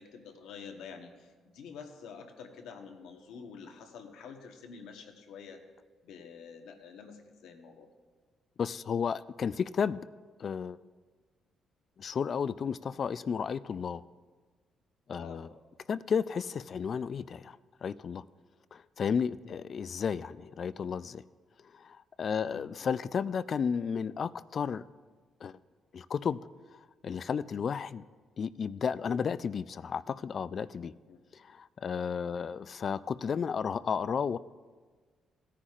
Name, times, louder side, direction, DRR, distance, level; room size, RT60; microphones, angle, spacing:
voice 1, 0.0-5.6 6.0-7.9 15.2-15.4 19.4-19.6 22.3-22.7 31.1-31.2 32.3-32.5, left 6 dB, 85° left, 4 dB, 1.1 m, -48 dB
voice 2, 8.6-10.0 10.4-10.8 12.0-14.0 15.1-15.5 15.9-18.2 18.7-21.2 21.7-24.8 25.4-25.6 25.9-26.4 26.7-28.0 28.4-30.9 31.3-34.4, left 6 dB, 50° left, 17 dB, 0.3 m, -33 dB
17.0 x 9.9 x 2.5 m, 1.5 s
cardioid pair, 90°, 0 cm